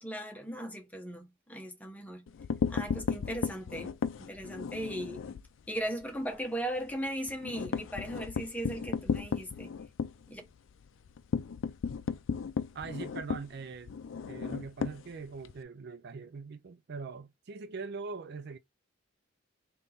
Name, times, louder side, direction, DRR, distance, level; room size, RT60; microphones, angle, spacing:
voice 1, 0.0-2.3 2.7-5.2 5.7-9.7 10.3-10.4, right 1 dB, 10° left, 1.0 m, -38 dB
sound 1, 2.3-5.5 5.8-6.0 6.3-6.4 6.8-15.6, left 5 dB, 80° left, 0.4 m, -35 dB
voice 2, 12.7-14.0 14.3-18.6, right 4 dB, 60° right, 0.4 m, -42 dB
3.5 x 2.9 x 3.9 m
head